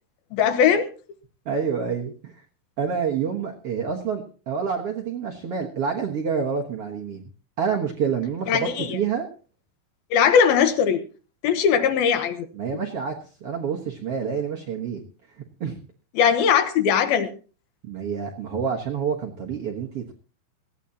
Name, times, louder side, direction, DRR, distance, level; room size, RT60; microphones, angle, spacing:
voice 1, 0.3-0.9 8.5-9.0 10.1-11.0 11.4-12.5 16.2-17.3, left 7 dB, 75° left, 9 dB, 2.9 m, -20 dB
voice 2, 1.5-2.3 2.8-7.3 7.6-9.3 12.5-13.2 13.4-15.0 15.6-15.8 17.8-20.1, right 6 dB, 55° right, 0 dB, 1.7 m, -28 dB
18.5 x 15.0 x 2.8 m, 0.36 s
omnidirectional pair, 4.4 m